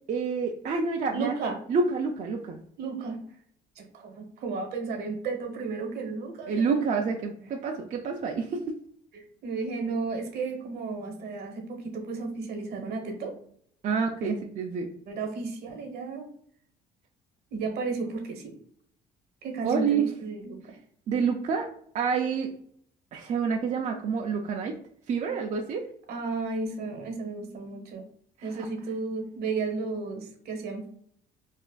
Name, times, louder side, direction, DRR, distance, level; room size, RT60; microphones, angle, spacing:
voice 1, 0.1-1.3 1.7-2.6 6.5-8.8 13.8-14.9 19.6-20.1 21.1-21.7 21.9-22.5 23.1-24.8 25.1-25.9 28.4-28.6, right 5 dB, 45° right, 2 dB, 0.4 m, -28 dB
voice 2, 1.1-1.6 2.8-3.2 3.8-7.1 9.1-13.4 14.2-14.3 15.1-16.3 17.5-18.6 19.4-20.8 26.1-28.0 28.4-30.9, right 4 dB, 70° right, 3 dB, 1.0 m, -33 dB
4.1 x 2.4 x 2.3 m, 0.63 s
cardioid pair, 110°, 17 cm